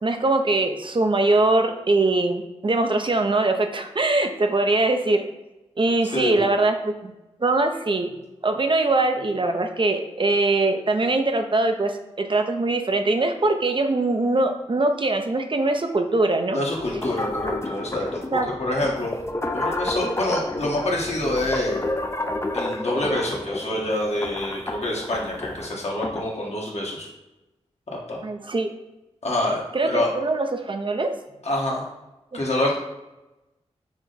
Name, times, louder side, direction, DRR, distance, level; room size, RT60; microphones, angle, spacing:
voice 1, 0.0-5.2 5.8-7.1 7.4-8.1 8.4-16.6 18.3-18.5 28.2-28.7 29.7-31.1, right 2 dB, 45° right, 6 dB, 0.5 m, -22 dB
voice 2, 6.1-6.5 16.5-19.1 19.5-21.8 22.5-27.1 27.9-28.2 29.2-30.1 31.4-31.9 32.3-32.8, left 1 dB, 65° left, -3 dB, 1.4 m, -26 dB
sound 1, 16.7-26.3, left 2 dB, 20° left, 0.5 m, -30 dB
6.0 x 2.1 x 3.9 m, 0.99 s
cardioid pair, 50°, 12 cm